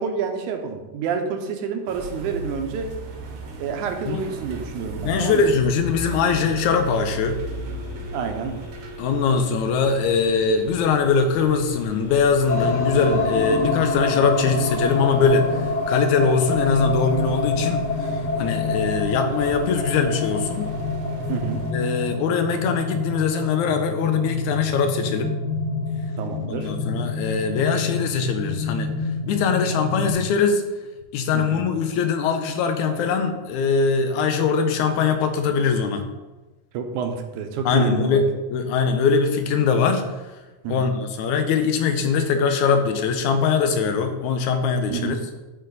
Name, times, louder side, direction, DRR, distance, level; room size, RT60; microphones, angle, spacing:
voice 1, 0.0-2.9 3.6-5.5 8.1-8.5 21.3-21.6 26.2-26.7 31.3-31.7 36.7-38.2 40.6-40.9 44.9-45.2, right 6 dB, 80° right, 5 dB, 2.3 m, -28 dB
sound 1, 1.9-21.7, right 3 dB, 65° right, 1.9 m, -37 dB
voice 2, 5.0-7.4 9.0-20.7 21.7-25.4 26.5-28.9 29.3-30.6 31.1-36.0 37.7-40.1 40.7-45.2, left 5 dB, 85° left, 7 dB, 2.1 m, -22 dB
Telephone, 7.3-15.3, left 6 dB, 65° left, 1.8 m, -42 dB
sound 2, 12.5-30.1, left 3 dB, 50° left, 2.2 m, -27 dB
12.5 x 4.5 x 4.0 m, 1.1 s
omnidirectional pair, 3.5 m